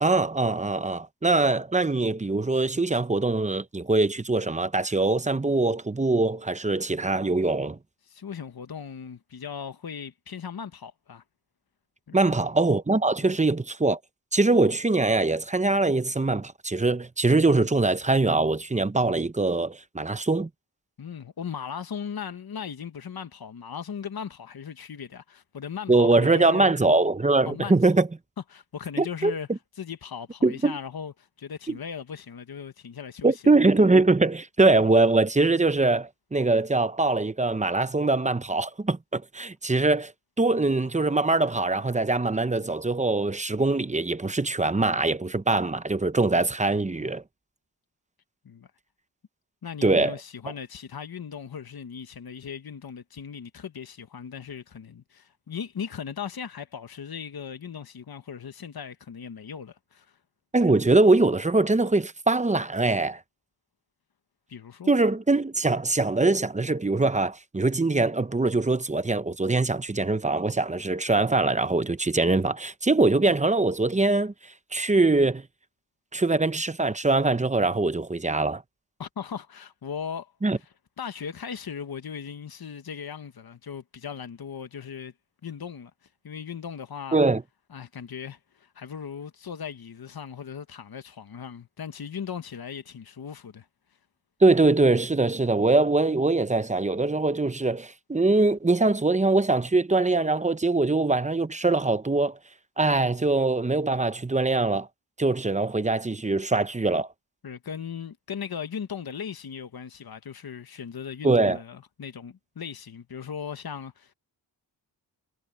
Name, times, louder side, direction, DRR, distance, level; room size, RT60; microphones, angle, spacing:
voice 1, 0.0-7.8 12.1-14.0 14.3-20.5 25.9-28.1 29.0-29.3 30.4-30.8 33.2-40.1 40.4-47.2 49.8-50.1 60.5-63.2 64.9-74.3 74.7-75.4 76.1-78.6 80.4-80.6 87.1-87.4 94.4-102.4 102.8-104.9 105.2-107.1 111.2-111.6, right 3 dB, 15° right, 0.8 m, -23 dB
voice 2, 8.1-11.2 12.1-12.4 13.2-13.4 21.0-26.7 27.4-28.0 28.5-29.5 29.8-33.4 46.9-47.0 48.4-48.7 49.6-60.2 64.5-64.9 79.0-80.7 81.0-85.1 85.4-85.9 86.2-87.2 87.7-93.7 106.2-106.4 107.4-114.1, left 7 dB, 55° left, 1.4 m, -38 dB
wide cardioid pair, 100°, 43 cm